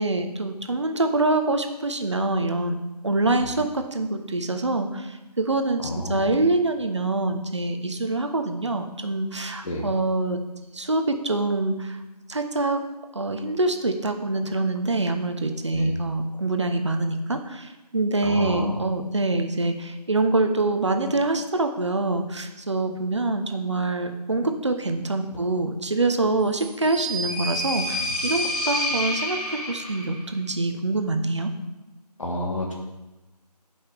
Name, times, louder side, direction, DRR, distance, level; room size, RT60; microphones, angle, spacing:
voice 1, 0.0-2.7 3.0-10.4 10.7-12.0 12.3-12.8 13.1-31.5, right 2 dB, 45° right, 6 dB, 0.8 m, -25 dB
voice 2, 5.8-6.3 9.6-9.9 15.7-15.9 18.2-18.7 32.2-32.7, left 1 dB, 50° left, -2 dB, 1.7 m, -29 dB
sound 1, 26.5-30.2, equal, 5° left, 0.7 m, -29 dB
15.5 x 5.6 x 3.5 m, 1.0 s
figure-of-eight pair, 165°, 21 cm